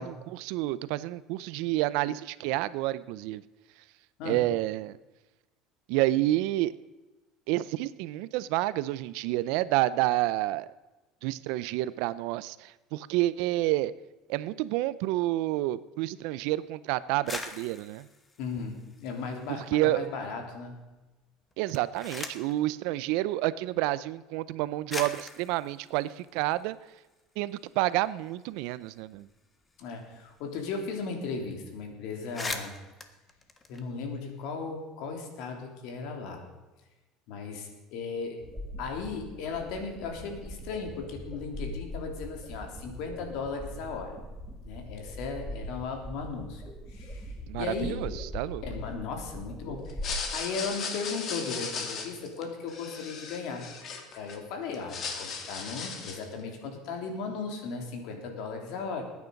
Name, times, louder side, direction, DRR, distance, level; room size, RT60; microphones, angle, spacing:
voice 1, 0.0-3.4 4.2-5.0 5.9-6.7 7.5-10.7 11.2-13.9 14.3-18.1 19.5-20.1 21.6-26.8 27.4-29.3 47.5-48.6, right 16 dB, 75° right, 17 dB, 0.6 m, -29 dB
sound 1, 17.1-19.7 20.0-20.7 21.5-22.6 23.6-23.7 24.5-24.6 24.9-27.2 27.6-27.7 27.9-30.5 30.8-30.9 31.2-31.5 31.8-31.9 32.2-34.4, left 3 dB, 20° left, 1.4 m, -42 dB
voice 2, 18.4-20.8 29.8-32.7 33.7-36.5 37.3-38.4 38.8-44.2 44.6-46.6 46.9-48.0 48.6-50.0 50.3-53.8 54.1-59.0, left 4 dB, 70° left, 3 dB, 3.3 m, -36 dB
sound 2, 38.4-50.2, equal, 5° right, 3.3 m, -41 dB
sound 3, 49.9-54.4 54.7-56.3, left 5 dB, 45° left, 2.4 m, -37 dB
20.5 x 9.6 x 5.3 m, 1.1 s
cardioid pair, 130°, 0 cm